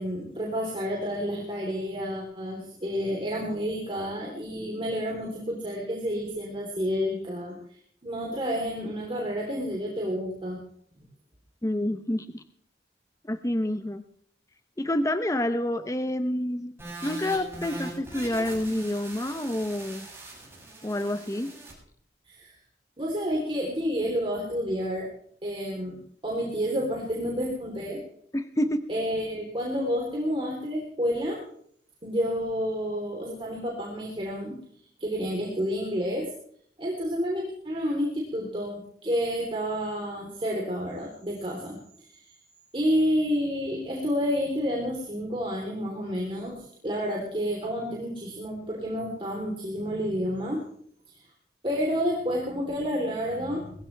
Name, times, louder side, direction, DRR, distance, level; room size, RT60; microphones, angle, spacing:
voice 1, 0.0-7.5 8.0-10.6 22.3-22.5 23.0-25.1 25.4-26.0 26.2-28.0 28.9-31.4 32.0-34.6 35.0-36.3 36.8-41.8 42.1-42.2 42.7-50.6 51.1-51.2 51.6-53.8, equal, 30° right, -2 dB, 3.5 m, -29 dB
voice 2, 11.6-12.4 13.3-14.0 14.8-16.7 17.0-20.1 20.8-21.5 28.3-28.8, left 1 dB, 20° left, 9 dB, 0.7 m, -28 dB
sound 1, 16.8-21.7, right 2 dB, 15° right, 7.3 m, -41 dB
21.5 x 15.0 x 3.4 m, 0.63 s
head